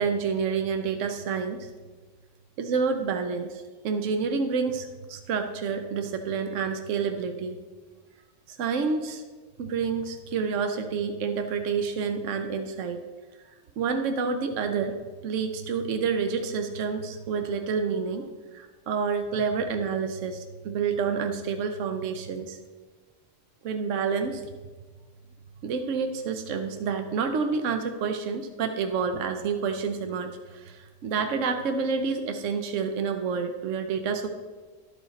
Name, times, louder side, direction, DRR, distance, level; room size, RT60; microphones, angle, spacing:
voice 1, 0.0-1.7 2.6-7.6 8.5-9.2 9.6-13.0 13.8-15.0 15.2-22.6 23.6-24.4 25.6-34.3, right 5 dB, 80° right, 6 dB, 1.0 m, -28 dB
12.5 x 4.8 x 4.0 m, 1.3 s
omnidirectional pair, 1.3 m